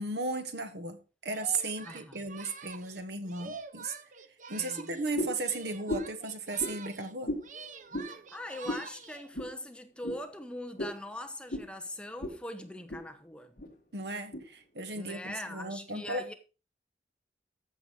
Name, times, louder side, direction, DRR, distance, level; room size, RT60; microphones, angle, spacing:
voice 1, 0.0-3.9 4.5-7.3 13.9-16.3, right 3 dB, 70° right, 1.3 m, -35 dB
Singing, 1.3-5.1 5.4-7.1 7.4-9.3, right 5 dB, 45° right, 0.8 m, -47 dB
voice 2, 1.8-2.3 4.6-5.0 8.1-13.6 14.9-16.3, left 1 dB, 5° left, 0.9 m, -42 dB
sound 1, 5.1-5.4 5.9-6.2 6.6-6.8 7.2-7.5 7.9-8.1 8.6-8.9 9.3-9.5 10.0-10.2 10.8-11.0 11.5-11.7 12.2-12.4 12.7-13.0 13.6-13.7 14.3-14.4, left 1 dB, 50° left, 1.8 m, -35 dB
14.0 x 6.1 x 4.6 m
head